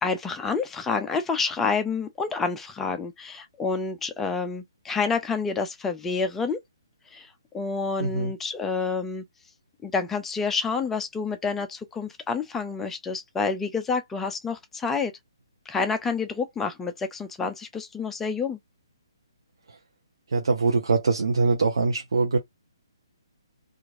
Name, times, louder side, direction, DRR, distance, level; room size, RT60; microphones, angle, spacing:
voice 1, 0.0-6.6 7.1-7.3 7.5-9.2 9.8-15.1 15.7-18.6, left 4 dB, 10° left, 0.4 m, -28 dB
voice 2, 8.0-8.3 20.3-22.4, right 4 dB, 70° right, 0.6 m, -23 dB
2.9 x 2.4 x 2.5 m
figure-of-eight pair, 140°, 3 cm